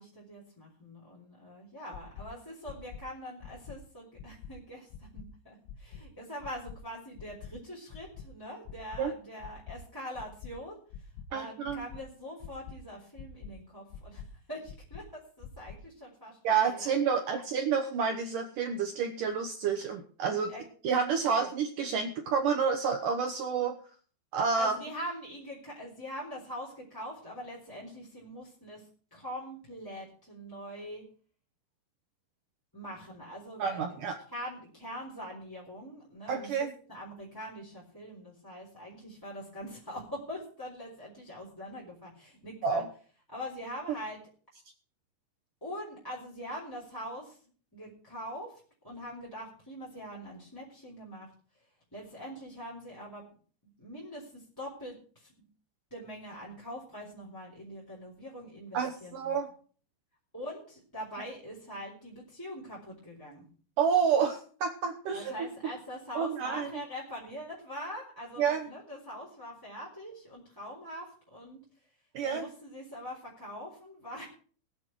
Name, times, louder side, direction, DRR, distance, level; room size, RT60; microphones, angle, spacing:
voice 1, 0.0-16.9 20.5-20.6 21.3-21.5 24.6-31.0 32.7-34.0 34.3-42.8 43.3-44.2 45.6-51.7 51.9-53.2 53.8-55.3 55.9-59.3 60.3-63.5 65.1-71.6 72.2-74.2, equal, 5° left, -5 dB, 3.2 m, -43 dB
sound 1, 1.9-2.2 2.7-3.0 3.4-3.8 4.2-4.5 4.9-5.3 5.7-6.0 6.4-6.8 7.2-7.5 7.9-8.3 8.7-9.0 9.4-9.8 10.2-10.5 10.9-11.2 11.7-12.0 12.4-12.8 13.2-13.5 13.9-14.3 14.7-15.0 15.4-15.8, left 9 dB, 80° left, 3.8 m, -44 dB
voice 2, 11.3-11.8 16.4-20.5 20.8-23.7 24.3-24.8 33.6-34.2 36.3-36.7 42.6-42.9 58.7-59.5 63.8-65.5 66.2-66.7 68.4-68.7 72.1-72.5, right 6 dB, 80° right, 3 dB, 1.9 m, -29 dB
20.5 x 8.4 x 4.6 m, 0.43 s
omnidirectional pair, 5.4 m